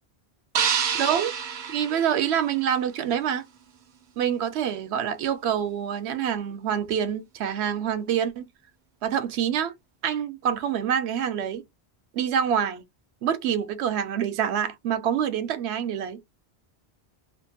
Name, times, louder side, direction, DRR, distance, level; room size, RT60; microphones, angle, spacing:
sound 1, 0.5-2.8, right 7 dB, 55° right, 0.6 m, -28 dB
voice 1, 0.9-1.3 1.6-3.4 4.2-8.5 9.0-9.7 10.0-11.6 12.1-12.8 13.2-16.2, right 9 dB, 80° right, 0.9 m, -26 dB
2.6 x 2.5 x 2.7 m
omnidirectional pair, 1.1 m